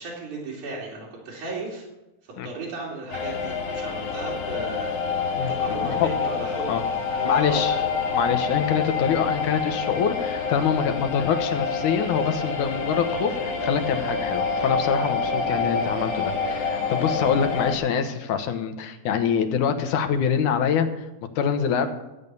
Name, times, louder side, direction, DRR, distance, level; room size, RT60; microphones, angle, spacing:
voice 1, 0.0-1.8 2.4-6.7 7.1-8.0, right 2 dB, 80° right, -4 dB, 4.0 m, -35 dB
sound 1, 3.1-17.8, left 5 dB, 60° left, 2.5 m, -27 dB
voice 2, 5.4-6.1 6.7-6.8 7.2-7.8 8.1-21.1 21.4-21.9, left 7 dB, 85° left, 7 dB, 2.5 m, -25 dB
14.0 x 8.9 x 5.4 m, 0.98 s
omnidirectional pair, 3.4 m